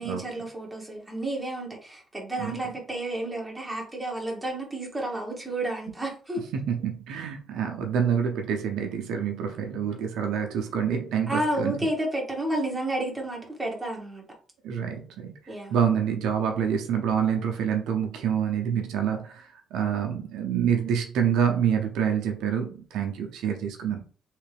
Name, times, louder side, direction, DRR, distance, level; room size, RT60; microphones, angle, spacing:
voice 1, 0.0-6.4 11.3-14.2 15.5-15.8, right 1 dB, 15° right, -1 dB, 1.6 m, -31 dB
voice 2, 6.7-11.9 14.6-15.3 15.7-24.0, right 8 dB, 85° right, 3 dB, 0.7 m, -27 dB
3.3 x 3.2 x 3.4 m, 0.41 s
cardioid pair, 90°, 0 cm